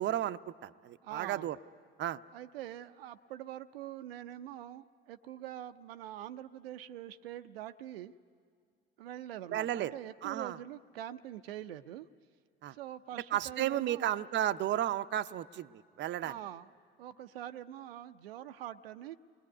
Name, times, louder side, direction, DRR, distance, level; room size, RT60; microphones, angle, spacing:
voice 1, 0.0-1.6 2.0-2.2 9.5-9.9 10.2-10.6 12.6-12.7 13.3-16.4, right 12 dB, 40° right, 11 dB, 0.6 m, -33 dB
voice 2, 1.0-1.5 2.3-8.1 9.0-12.1 12.7-14.1 16.2-16.7 17.0-19.1, right 12 dB, 80° right, 9 dB, 0.6 m, -44 dB
27.0 x 20.5 x 9.7 m, 2.1 s
hypercardioid pair, 65°, 29 cm